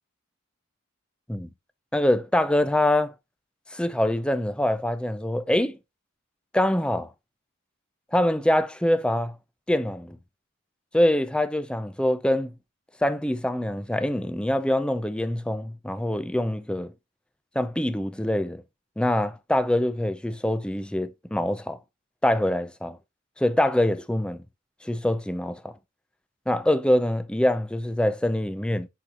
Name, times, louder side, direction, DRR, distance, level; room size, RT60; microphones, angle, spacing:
voice 1, 1.9-3.1 3.7-5.8 6.5-7.1 8.1-9.4 9.7-10.2 10.9-12.5 13.0-16.9 17.6-18.6 19.0-21.8 22.2-23.0 23.4-24.4 24.8-25.7 26.5-28.9, left 1 dB, 5° left, 0.5 m, -24 dB
10.0 x 4.2 x 2.9 m
head